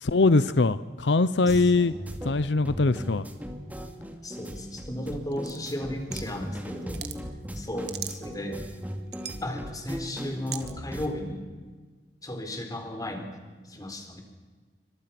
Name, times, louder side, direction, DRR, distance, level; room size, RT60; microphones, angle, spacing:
voice 1, 0.0-1.9 2.2-3.2, left 3 dB, 85° left, 15 dB, 0.7 m, -22 dB
sound 1, 1.5-11.1, equal, 10° right, 2.3 m, -38 dB
voice 2, 4.2-7.0 7.5-8.6 9.4-11.5 12.2-13.4 13.7-14.2, left 1 dB, 20° left, 4 dB, 4.2 m, -35 dB
sound 2, 5.3-6.4 6.8-7.2 7.6-8.4 8.9-9.5 10.5-10.7, right 11 dB, 65° right, 1.9 m, -38 dB
27.5 x 25.5 x 6.0 m, 1.4 s
head